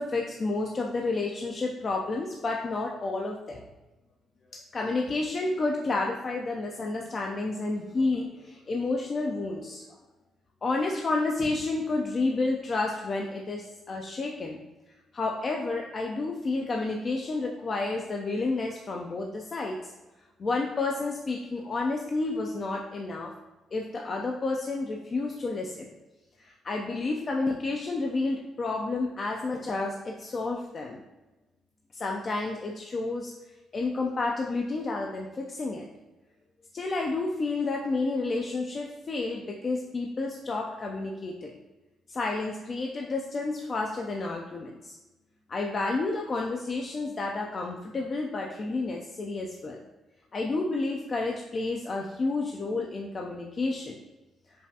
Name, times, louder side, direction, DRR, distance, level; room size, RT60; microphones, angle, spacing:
voice 1, 0.0-3.6 4.5-9.8 10.6-14.6 15.1-19.9 20.4-23.3 23.7-25.9 26.4-31.0 31.9-33.3 33.7-35.8 36.7-41.5 42.1-45.0 45.5-49.8 50.3-54.0, left 3 dB, 40° left, 1 dB, 0.4 m, -30 dB
5.3 x 2.4 x 2.7 m, 1.1 s
cardioid pair, 90°, 0 cm